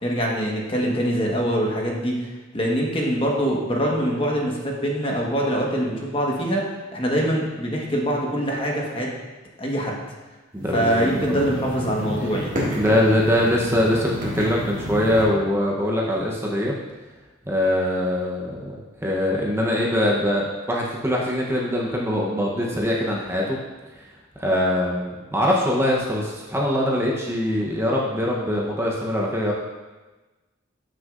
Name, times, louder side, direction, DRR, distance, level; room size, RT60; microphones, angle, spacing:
voice 1, 0.0-2.3 2.5-6.7 6.9-9.1 9.6-10.0 10.7-12.5, equal, 30° left, -1 dB, 1.2 m, -24 dB
voice 2, 10.5-11.4 12.7-16.8 17.5-18.7 19.0-23.6 23.9-24.0 24.4-29.5, left 1 dB, 10° right, -3 dB, 0.8 m, -23 dB
sound 1, 10.6-15.2, equal, 40° right, 2.1 m, -31 dB
12.5 x 6.3 x 2.5 m, 1.2 s
head